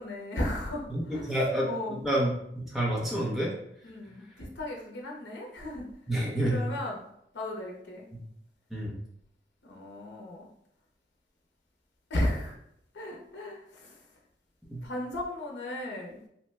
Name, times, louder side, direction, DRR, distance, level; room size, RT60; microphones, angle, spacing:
voice 1, 0.0-1.3 1.6-2.0 3.8-5.8 6.5-7.0 7.3-8.1 9.6-10.5 12.1-12.6 12.9-13.9 14.8-16.2, left 1 dB, 85° left, 0 dB, 0.6 m, -35 dB
voice 2, 0.9-3.5 6.1-6.6 8.1-8.2 8.7-9.0 14.7-14.8, right 1 dB, ahead, -5 dB, 0.6 m, -29 dB
2.8 x 2.1 x 3.2 m, 0.73 s
head